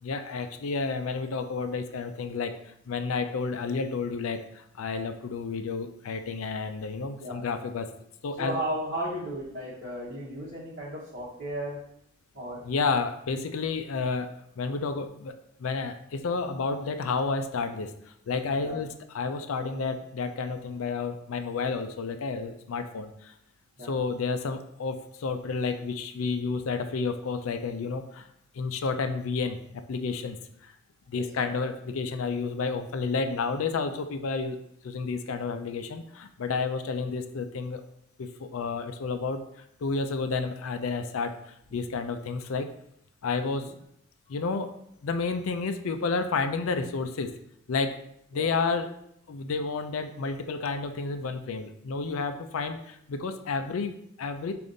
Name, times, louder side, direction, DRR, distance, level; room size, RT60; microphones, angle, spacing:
voice 1, 0.0-2.5 2.9-7.9 8.2-8.6 12.6-14.3 14.6-15.3 15.6-18.9 19.1-23.3 23.8-28.3 28.5-30.7 31.1-34.6 34.8-37.8 38.2-39.4 39.8-42.7 43.2-43.7 44.3-44.7 45.0-47.3 47.7-48.0 48.3-48.9 49.3-54.5, left 4 dB, 80° left, 8 dB, 0.4 m, -31 dB
voice 2, 8.4-11.8 12.3-12.6 18.6-18.8 23.8-23.9 31.1-31.2 41.7-41.8 43.4-43.7 44.3-44.4 48.3-48.5, right 1 dB, 50° right, -9 dB, 1.0 m, -35 dB
5.1 x 2.5 x 3.8 m, 0.72 s
head